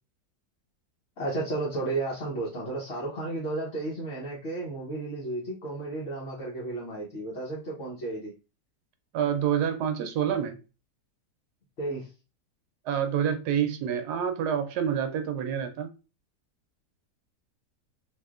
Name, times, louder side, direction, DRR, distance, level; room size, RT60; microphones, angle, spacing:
voice 1, 1.2-8.3 11.8-12.1, right 2 dB, 50° left, 1.0 m, -33 dB
voice 2, 9.1-10.6 12.9-15.9, right 8 dB, 85° right, 1.2 m, -27 dB
3.5 x 2.6 x 2.4 m
omnidirectional pair, 1.7 m